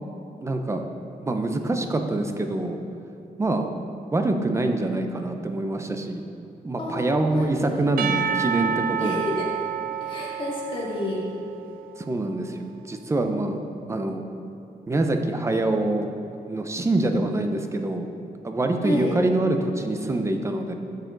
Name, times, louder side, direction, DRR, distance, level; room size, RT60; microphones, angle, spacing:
voice 1, 0.4-0.8 1.2-2.8 3.4-3.7 4.1-6.2 6.6-9.2 12.1-13.6 13.9-14.2 14.9-16.1 16.5-18.1 18.4-20.7, right 2 dB, 15° right, 5 dB, 0.6 m, -25 dB
voice 2, 6.8-7.8 9.0-9.5 10.0-11.2 18.8-19.1, left 2 dB, 35° left, -5 dB, 2.2 m, -30 dB
Percussion / Church bell, 8.0-12.2, right 8 dB, 65° right, 0.5 m, -29 dB
13.0 x 6.7 x 3.9 m, 2.8 s
wide cardioid pair, 155°, 16 cm